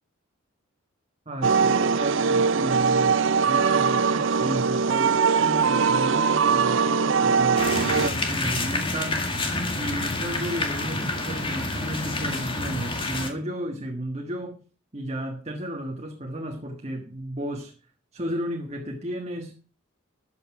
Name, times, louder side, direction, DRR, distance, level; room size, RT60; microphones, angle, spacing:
voice 1, 1.2-9.2 9.7-14.6 14.9-17.7 18.1-19.5, equal, 30° right, 3 dB, 1.5 m, -33 dB
sound 1, 1.4-8.1, right 5 dB, 60° right, 0.6 m, -21 dB
sound 2, 7.6-13.3, left 2 dB, 25° left, 2.0 m, -28 dB
13.5 x 8.2 x 5.9 m, 0.37 s
head